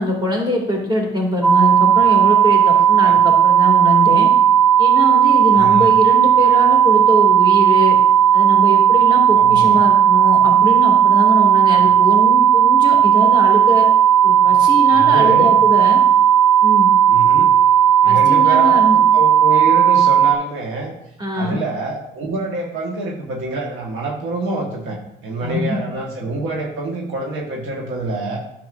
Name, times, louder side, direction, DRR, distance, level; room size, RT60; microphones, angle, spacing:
voice 1, 0.0-4.3 4.8-8.0 8.3-13.8 14.2-16.0 16.6-16.9 18.0-19.0 21.2-21.6 25.4-25.8, left 1 dB, 20° right, 0 dB, 2.3 m, -22 dB
sound 1, 1.4-20.4, right 9 dB, 5° right, 0.8 m, -13 dB
voice 2, 2.7-3.2 5.5-5.9 9.3-9.8 11.7-11.9 14.9-15.6 17.1-17.5 18.0-20.9 21.3-28.4, right 2 dB, 85° right, 0 dB, 1.4 m, -26 dB
9.5 x 6.8 x 2.5 m, 0.78 s
cardioid pair, 90°, 20 cm